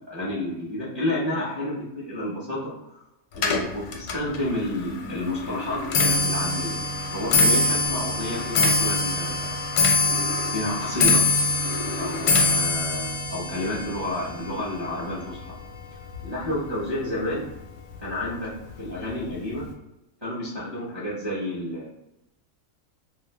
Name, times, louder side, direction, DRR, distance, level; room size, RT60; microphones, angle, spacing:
voice 1, 0.0-2.7 3.3-6.8 7.1-9.6 10.5-11.2 12.0-15.5 16.2-17.5 18.0-19.7 20.2-21.9, left 1 dB, 25° right, -8 dB, 0.6 m, -30 dB
Clock, 3.4-16.7 17.0-17.5 18.3-18.4 18.7-19.1 19.4-19.5, left 3 dB, 85° left, 1.1 m, -24 dB
2.6 x 2.5 x 3.2 m, 0.91 s
omnidirectional pair, 1.5 m